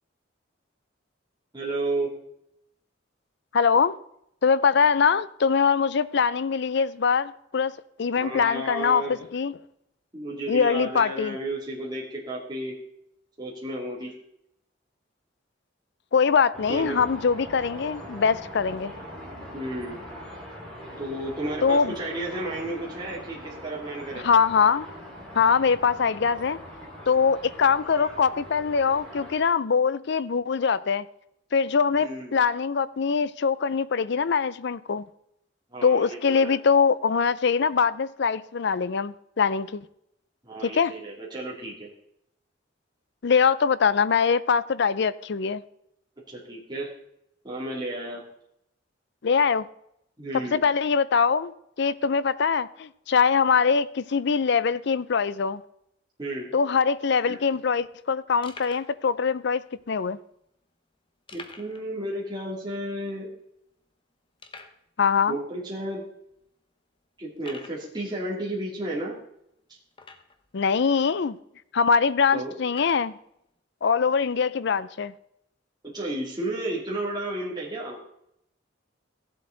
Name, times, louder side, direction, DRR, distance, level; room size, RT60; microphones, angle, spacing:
voice 1, 1.5-2.1 8.2-9.1 10.1-12.7 13.4-14.1 16.7-17.0 19.5-20.0 21.0-24.2 31.9-32.3 35.7-36.5 40.4-41.9 46.3-46.9 47.4-48.2 50.2-50.6 56.2-56.5 57.3-57.4 61.3-63.3 65.3-66.0 67.2-69.1 72.3-72.5 75.8-78.0, right 1 dB, 25° right, 2.7 m, -32 dB
voice 2, 3.5-3.9 4.4-9.6 10.5-11.4 16.1-18.9 21.6-21.9 24.2-24.9 25.3-26.6 27.1-31.1 31.5-35.1 35.8-39.8 40.6-40.9 43.2-45.6 49.2-49.7 50.5-51.5 51.8-55.6 56.5-60.2 65.0-65.4 70.5-71.4 71.7-73.2 73.8-75.1, left 6 dB, 65° left, 0.5 m, -23 dB
sound 1, 16.5-29.4, equal, 5° left, 4.2 m, -41 dB
sound 2, 57.4-57.5 57.9-58.0 58.4-59.0 59.7-59.8 61.3-61.9 62.2-62.3 62.7-62.8 63.4-63.5 64.4-64.8 65.6-65.7 66.3-66.4 67.4-67.8 69.9-70.5 71.3-71.4 72.7-73.1, left 3 dB, 30° left, 1.0 m, -45 dB
15.5 x 7.8 x 3.9 m
head